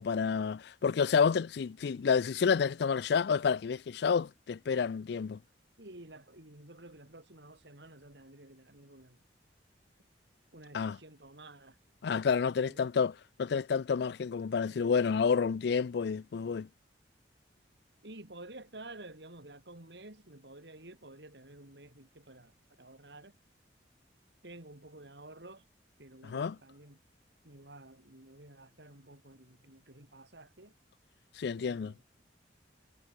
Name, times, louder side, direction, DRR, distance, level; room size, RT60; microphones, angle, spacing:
voice 1, 0.0-5.4 10.7-11.0 12.0-13.1 13.4-16.7 26.3-26.6 31.4-31.9, left 6 dB, 60° left, 0.4 m, -29 dB
voice 2, 5.8-9.2 10.5-11.8 12.6-12.9 18.0-23.3 24.4-25.7 26.0-27.0 27.4-30.7 31.6-32.0, right 2 dB, 65° right, 4.2 m, -51 dB
head